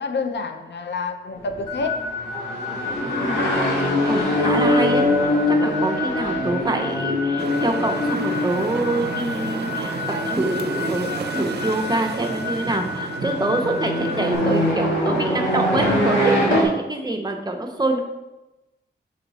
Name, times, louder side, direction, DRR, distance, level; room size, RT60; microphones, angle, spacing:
voice 1, 0.0-2.2, left 4 dB, 65° left, 6 dB, 0.6 m, -28 dB
sound 1, 1.4-16.6, left 1 dB, 90° left, 2.1 m, -24 dB
sound 2, 1.7-14.4, left 5 dB, 25° left, 1.4 m, -32 dB
voice 2, 3.0-3.5 4.0-5.1 5.5-10.0 10.2-18.0, right 2 dB, 20° right, 2 dB, 0.7 m, -25 dB
sound 3, 7.4-14.7, right 4 dB, 60° right, 0.5 m, -32 dB
5.8 x 3.9 x 4.1 m, 1.0 s
wide cardioid pair, 105°, 19 cm